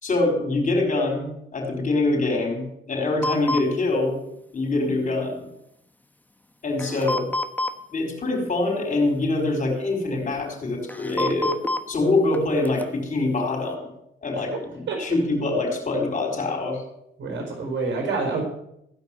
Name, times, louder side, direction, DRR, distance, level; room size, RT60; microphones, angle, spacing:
voice 1, 0.0-4.2 4.5-5.5 6.6-7.3 7.9-11.5 11.9-13.9 14.2-16.8, left 2 dB, 40° left, 2 dB, 4.9 m, -24 dB
sound 1, 3.2-3.6 6.8-7.7 9.4-9.5 10.9-11.8 12.3-12.4 12.7-12.8, left 1 dB, 10° left, 1.2 m, -27 dB
voice 2, 17.2-18.4, right 4 dB, 65° right, 2 dB, 4.5 m, -27 dB
15.5 x 5.4 x 9.0 m, 0.78 s
cardioid pair, 90°, 20 cm